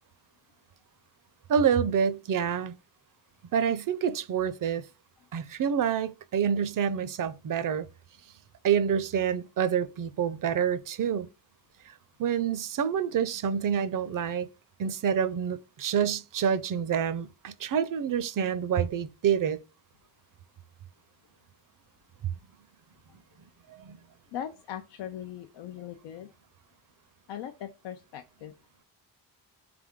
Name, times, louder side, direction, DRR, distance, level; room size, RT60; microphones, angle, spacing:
voice 1, 1.5-2.7 3.5-4.9 5.3-7.9 8.6-11.3 12.2-14.5 14.8-19.6 23.7-24.0, right 8 dB, 50° right, 0.5 m, -27 dB
voice 2, 24.3-26.3 27.3-28.5, left 10 dB, 85° left, 0.5 m, -39 dB
3.5 x 3.4 x 3.5 m
cardioid pair, 65°, 42 cm